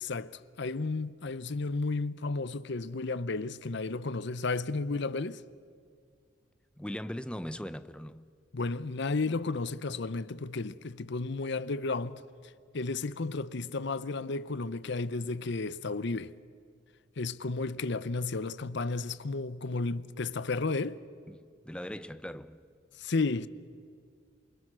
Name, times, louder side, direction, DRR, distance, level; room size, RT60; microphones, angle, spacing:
voice 1, 0.0-5.4 8.5-12.2 12.7-16.3 17.2-21.0 23.0-23.5, left 3 dB, 65° left, 0.7 m, -33 dB
voice 2, 6.8-8.3 21.3-22.6, equal, 5° left, 0.7 m, -40 dB
28.0 x 24.5 x 6.2 m
head